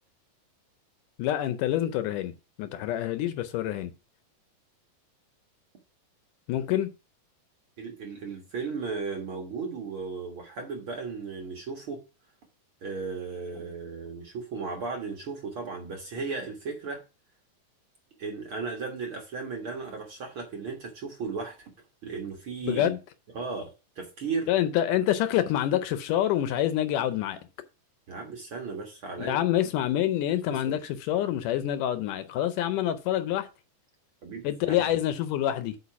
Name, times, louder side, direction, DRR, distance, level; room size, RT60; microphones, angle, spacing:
voice 1, 1.2-2.3 2.6-3.9 6.5-6.9 22.6-23.0 24.5-27.4 29.2-33.5 34.4-35.8, left 12 dB, 75° left, 2.1 m, -27 dB
voice 2, 7.8-12.0 12.8-17.0 18.2-21.7 22.0-22.9 23.3-23.7 24.0-24.5 28.1-29.4 30.5-30.8 34.2-34.8, right 4 dB, 50° right, 1.8 m, -35 dB
8.2 x 5.1 x 5.8 m
omnidirectional pair, 4.0 m